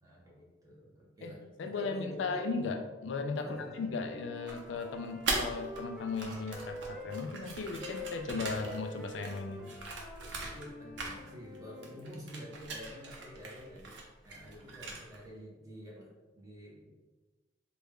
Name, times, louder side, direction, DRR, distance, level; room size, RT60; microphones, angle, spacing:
voice 1, 0.0-2.4 3.4-3.7 10.2-14.0 14.2-17.0, equal, 20° right, -4 dB, 0.8 m, -48 dB
voice 2, 1.2-9.7, left 4 dB, 80° left, 5 dB, 0.4 m, -37 dB
sound 1, 3.2-7.3 7.8-12.0, left 2 dB, 5° right, 0.4 m, -47 dB
sound 2, 4.5-5.8 6.1-10.7 11.0-11.6 11.8-15.3, right 3 dB, 80° right, 0.6 m, -40 dB
3.3 x 2.2 x 3.5 m, 1.2 s
head